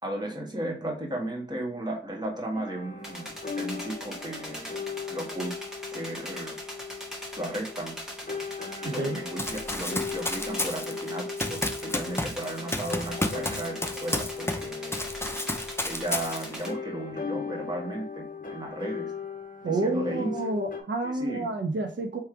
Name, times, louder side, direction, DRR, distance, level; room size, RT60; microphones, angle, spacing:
voice 1, 0.0-3.3 3.5-4.7 5.1-5.5 5.9-6.6 7.4-7.9 8.8-15.0 15.8-19.1 19.6-20.3 21.0-21.5, right 1 dB, 20° right, -1 dB, 1.6 m, -35 dB
sound 1, 2.5-20.8, left 5 dB, 45° left, 0.9 m, -38 dB
sound 2, 3.0-16.7, equal, 5° right, 1.7 m, -41 dB
voice 2, 8.8-9.2 19.6-22.2, right 2 dB, 70° right, 3 dB, 0.7 m, -29 dB
Run, 9.4-14.7 14.9-16.7, left 1 dB, 15° left, 0.7 m, -31 dB
3.5 x 3.1 x 4.6 m, 0.42 s
wide cardioid pair, 55°, 20 cm